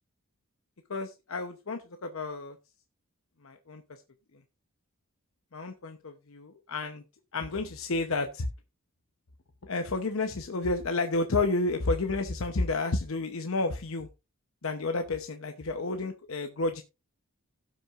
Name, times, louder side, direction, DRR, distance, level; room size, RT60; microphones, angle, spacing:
voice 1, 0.9-2.6 3.4-4.0 4.3-4.4 5.5-7.0 7.3-8.5 9.6-14.1 14.6-16.8, left 3 dB, 70° left, 6 dB, 0.8 m, -31 dB
17.0 x 6.1 x 2.5 m, 0.27 s
head